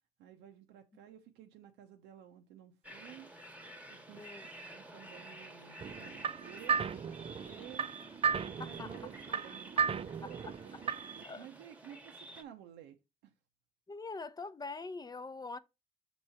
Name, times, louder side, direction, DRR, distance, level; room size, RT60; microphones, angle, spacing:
voice 1, 0.2-3.3 3.9-4.3 4.7-7.9 8.5-13.0 13.2-13.3, right 11 dB, 80° right, 0.7 m, -54 dB
sound 1, 2.8-12.4, right 2 dB, 10° right, 1.1 m, -51 dB
voice 2, 4.2-4.5 8.3-9.0 10.2-10.8 11.2-11.5 13.9-15.6, left 3 dB, 20° left, 0.6 m, -44 dB
sound 2, 5.8-11.2, right 6 dB, 30° right, 0.4 m, -35 dB
6.1 x 3.0 x 5.5 m
supercardioid pair, 60°, 19 cm